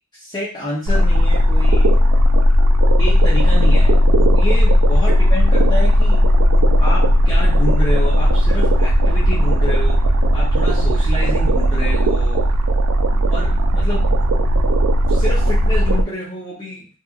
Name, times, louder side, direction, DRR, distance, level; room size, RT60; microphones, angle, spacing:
voice 1, 0.1-1.9 3.0-4.0 4.3-6.2 6.8-10.0 10.3-12.4 13.1-14.0 15.1-16.9, left 1 dB, 20° left, -9 dB, 0.6 m, -28 dB
sound 1, 0.9-16.0, equal, 85° right, 0.4 m, -15 dB
2.8 x 2.5 x 2.4 m, 0.36 s
head